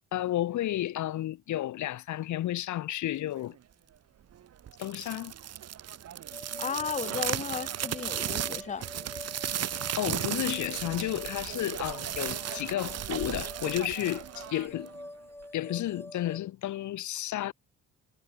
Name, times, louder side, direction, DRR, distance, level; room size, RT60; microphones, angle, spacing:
voice 1, 0.1-3.6 4.8-5.3 10.0-14.9 15.5-17.5, left 13 dB, 70° left, 1.3 m, -32 dB
sound 1, 4.7-15.0, right 10 dB, 55° right, 1.3 m, -35 dB
sound 2, 6.3-16.4, left 1 dB, 10° left, 5.9 m, -47 dB
voice 2, 6.6-8.8, left 6 dB, 25° left, 0.7 m, -34 dB
cardioid pair, 90°, 30 cm